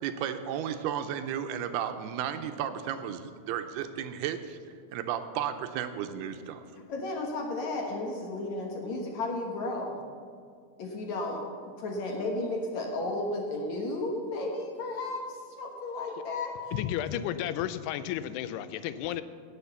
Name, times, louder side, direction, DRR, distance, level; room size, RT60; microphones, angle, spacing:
voice 1, 0.0-4.6 4.9-6.6, right 9 dB, 80° right, 8 dB, 2.6 m, -33 dB
voice 2, 6.9-10.0 10.8-16.5, left 2 dB, 60° left, 1 dB, 2.1 m, -33 dB
voice 3, 16.7-19.2, left 11 dB, 90° left, 13 dB, 2.6 m, -32 dB
17.5 x 7.2 x 7.1 m, 2.3 s
omnidirectional pair, 4.7 m